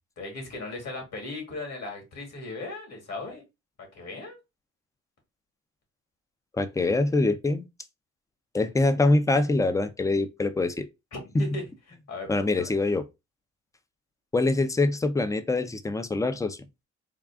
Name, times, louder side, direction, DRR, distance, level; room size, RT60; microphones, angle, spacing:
voice 1, 0.2-3.4 3.9-4.4 11.1-11.7 12.1-12.7, left 2 dB, 60° left, 2.1 m, -37 dB
voice 2, 6.5-7.7 8.5-10.9 11.3-11.5 12.3-13.0 14.3-16.6, left 2 dB, 10° left, 0.5 m, -24 dB
3.7 x 2.4 x 3.4 m
cardioid pair, 90°, 30 cm